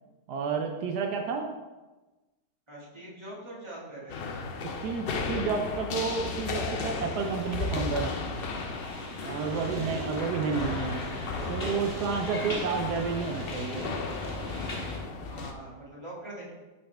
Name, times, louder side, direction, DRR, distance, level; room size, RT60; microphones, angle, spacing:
voice 1, 0.3-1.5 4.6-8.1 9.2-11.0 11.5-13.8, right 5 dB, 80° right, 3 dB, 1.2 m, -30 dB
voice 2, 2.7-4.2 9.5-9.7 15.3-16.5, right 1 dB, 15° right, -7 dB, 1.9 m, -43 dB
sound 1, 4.1-15.5, left 4 dB, 80° left, 0.5 m, -35 dB
sound 2, 6.1-15.0, left 1 dB, 40° left, 1.6 m, -40 dB
Fireworks, 9.2-15.2, right 2 dB, 40° right, 1.5 m, -42 dB
11.0 x 4.2 x 3.4 m, 1.2 s
omnidirectional pair, 1.7 m